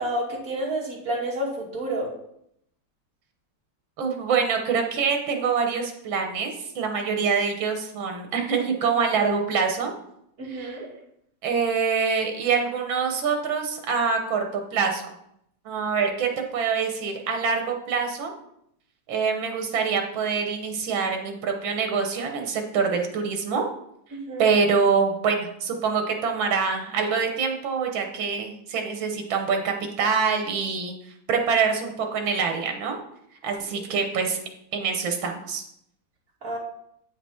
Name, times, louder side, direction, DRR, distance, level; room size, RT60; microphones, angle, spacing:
voice 1, 0.0-2.1 10.4-10.9 24.1-24.6 36.4-36.6, right 1 dB, 45° right, -5 dB, 3.1 m, -30 dB
voice 2, 4.0-9.9 10.5-10.8 11.4-15.1 15.7-18.3 19.1-23.6 24.4-30.9 31.3-33.0 33.4-34.4 34.7-35.6, right 5 dB, 85° right, 4 dB, 1.9 m, -25 dB
8.6 x 5.9 x 4.4 m, 0.73 s
omnidirectional pair, 2.1 m